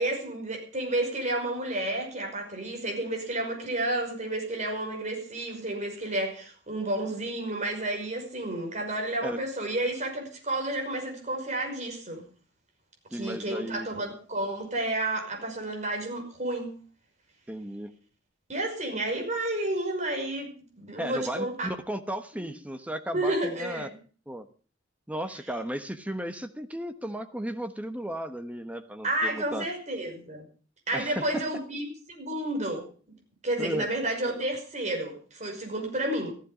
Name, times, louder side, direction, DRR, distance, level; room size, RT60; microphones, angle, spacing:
voice 1, 0.0-12.2 13.1-16.7 18.5-21.7 22.3-22.5 23.1-23.9 29.0-30.4 30.9-32.9 33.4-36.3, right 1 dB, 40° right, 2 dB, 5.6 m, -31 dB
voice 2, 13.1-13.9 17.5-17.9 21.0-23.9 24.3-24.5 25.1-29.7 30.9-31.5 33.6-33.9, equal, 10° right, 9 dB, 1.1 m, -35 dB
15.0 x 15.0 x 5.0 m, 0.40 s
head